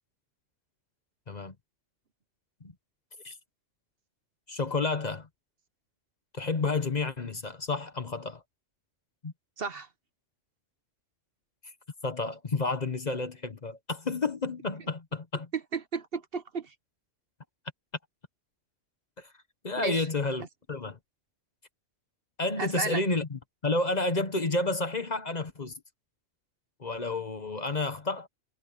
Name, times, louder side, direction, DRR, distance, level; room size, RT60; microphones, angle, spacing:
voice 1, 4.5-5.3 6.3-8.4 9.2-9.3 12.0-15.5 19.2-19.3 19.6-21.0 22.4-25.7 26.8-28.3, left 3 dB, 35° left, 1.2 m, -30 dB
voice 2, 9.6-9.9 15.7-16.7 19.8-20.1 22.6-23.0, right 4 dB, 50° right, 1.1 m, -33 dB
omnidirectional pair, 1.3 m